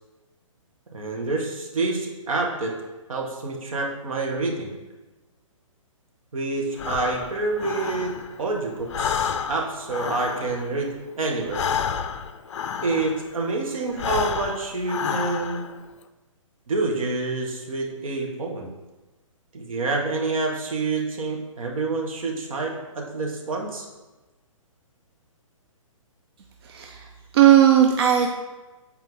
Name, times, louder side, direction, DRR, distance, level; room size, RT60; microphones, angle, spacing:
voice 1, 0.9-2.8 3.1-4.8 6.3-11.6 12.8-15.7 16.7-18.7 19.5-23.9, right 3 dB, 75° right, 0 dB, 1.6 m, -27 dB
Breathing, 6.7-8.5 8.8-13.4 13.9-15.8, left 7 dB, 55° left, 0.5 m, -30 dB
voice 2, 26.6-28.3, right 10 dB, 50° right, 2 dB, 0.6 m, -17 dB
8.1 x 4.4 x 3.7 m, 1.1 s
hypercardioid pair, 155°, 18 cm